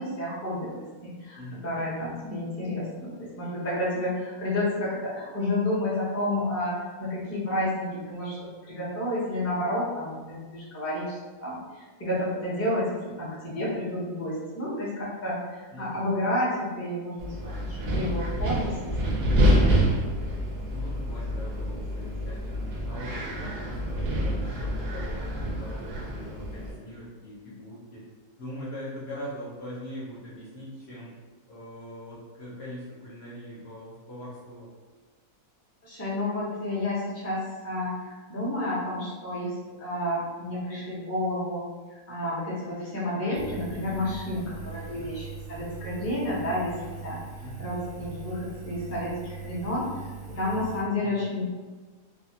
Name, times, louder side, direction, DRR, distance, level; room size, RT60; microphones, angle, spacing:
voice 1, 0.0-19.3 35.8-41.6 41.9-46.7 47.0-47.2 47.6-50.0 50.3-51.4, left 1 dB, 20° left, -8 dB, 0.3 m, -30 dB
voice 2, 15.7-16.2 20.7-28.0 28.4-31.2 31.5-34.7 44.9-45.2 47.4-47.7 51.0-51.3, equal, 55° left, -7 dB, 0.7 m, -42 dB
Wind, 17.2-26.7, equal, 70° right, 0.6 m, -27 dB
Engine, 43.3-50.8, right 5 dB, 90° right, 1.1 m, -41 dB
2.7 x 2.3 x 2.7 m, 1.4 s
omnidirectional pair, 1.6 m